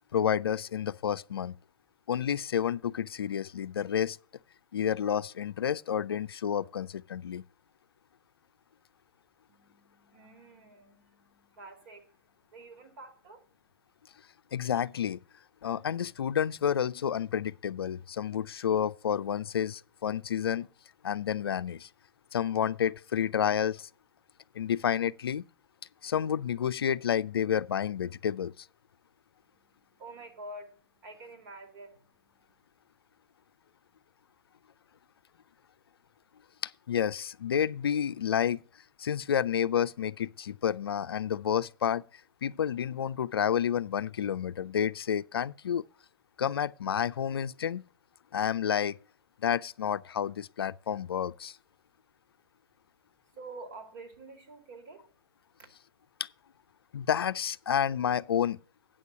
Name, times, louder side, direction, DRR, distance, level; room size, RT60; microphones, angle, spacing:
voice 1, 0.1-1.5 2.1-4.2 4.7-7.4 14.5-15.2 15.6-20.7 21.0-21.9 22.3-23.9 24.5-25.4 26.0-28.5 36.6-38.6 39.0-42.0 42.4-45.8 46.4-47.8 48.3-49.0 49.4-51.6 56.2-56.3 56.9-58.6, left 8 dB, 80° left, 0.4 m, -30 dB
voice 2, 9.5-14.0 29.4-32.6 53.3-55.1 55.6-55.7, right 2 dB, 55° right, 2.5 m, -49 dB
8.8 x 6.7 x 6.1 m
hypercardioid pair, 120°, 12 cm